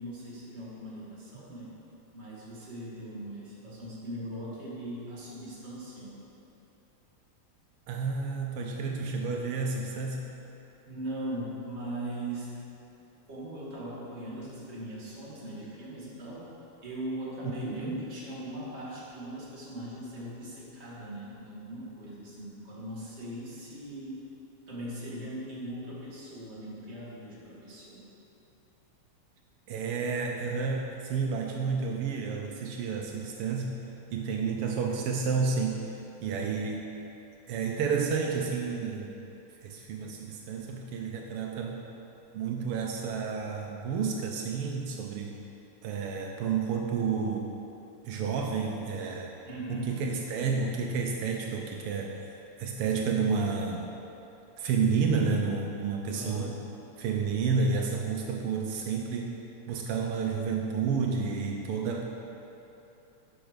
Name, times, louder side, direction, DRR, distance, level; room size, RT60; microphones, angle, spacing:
voice 1, 0.0-1.8 2.1-6.2 10.9-12.5 13.3-16.5 16.8-24.3 24.7-28.1 49.5-50.0 56.1-56.5, right 1 dB, 25° right, -7 dB, 1.8 m, -39 dB
voice 2, 7.9-10.3 17.4-18.0 29.7-33.8 34.1-35.8 36.2-36.9 37.5-39.1 39.5-41.8 42.3-45.4 45.8-47.5 48.0-49.3 49.7-53.9 54.6-56.5 57.0-59.3 59.7-62.0, right 5 dB, 90° right, 1 dB, 1.2 m, -30 dB
11.0 x 6.3 x 5.1 m, 2.9 s
omnidirectional pair, 3.3 m